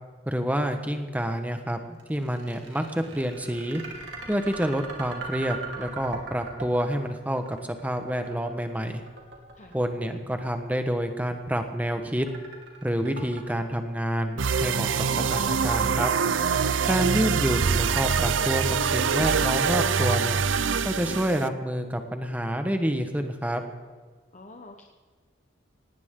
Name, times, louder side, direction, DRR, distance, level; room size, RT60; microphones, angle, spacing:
voice 1, 0.2-3.8 4.3-7.6 7.8-9.0 9.7-12.3 12.8-16.1 16.8-20.4 20.8-23.6, equal, 10° right, 6 dB, 1.3 m, -28 dB
sound 1, 2.0-18.1, right 4 dB, 70° right, 2.9 m, -41 dB
sound 2, 14.4-21.5, right 6 dB, 90° right, 0.6 m, -24 dB
voice 2, 24.3-24.8, left 2 dB, 40° left, 2 dB, 1.1 m, -48 dB
18.0 x 18.0 x 3.9 m, 1.5 s
head